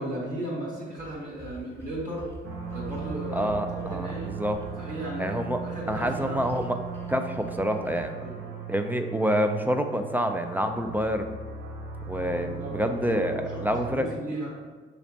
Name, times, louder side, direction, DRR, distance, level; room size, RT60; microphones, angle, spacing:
voice 1, 0.0-2.3 2.7-3.5 3.9-4.3 4.8-6.4 8.2-8.4 12.6-14.5, right 1 dB, 45° right, -9 dB, 1.3 m, -35 dB
sound 1, 1.0-2.4 2.6-4.6 5.9-6.6 6.9-7.1 7.4-7.6 7.9-8.0, equal, 10° left, 0.9 m, -45 dB
sound 2, 2.4-13.9, right 6 dB, 70° right, 1.0 m, -37 dB
voice 2, 3.3-4.6 5.2-5.6 5.9-6.8 7.1-8.2 8.7-11.4 12.1-14.1, equal, 10° right, 6 dB, 0.4 m, -27 dB
6.0 x 3.2 x 2.8 m, 1.4 s
cardioid pair, 90°, 20 cm